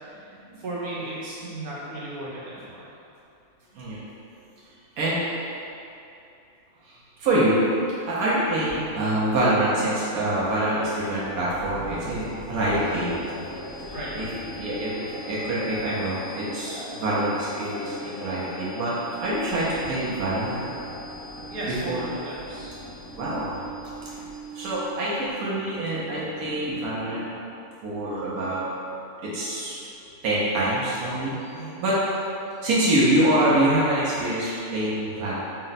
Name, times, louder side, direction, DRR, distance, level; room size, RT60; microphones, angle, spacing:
voice 1, 0.0-2.9 8.7-9.1 12.0-12.4 13.9-14.1 21.5-22.8 31.5-31.8, right 1 dB, 45° right, -8 dB, 0.9 m, -36 dB
voice 2, 7.2-7.6 8.1-13.2 14.1-14.3 14.6-18.9 19.2-20.6 21.9-22.1 23.1-23.5 24.5-27.3 27.8-28.6 29.2-29.8 30.2-31.5 31.8-31.9 32.6-35.3, right 1 dB, 90° right, -8 dB, 1.2 m, -25 dB
sound 1, 8.6-25.3, left 1 dB, 80° left, 1.1 m, -42 dB
sound 2, 11.6-25.1, right 2 dB, 70° right, 1.2 m, -43 dB
4.3 x 2.1 x 3.9 m, 2.7 s
omnidirectional pair, 1.5 m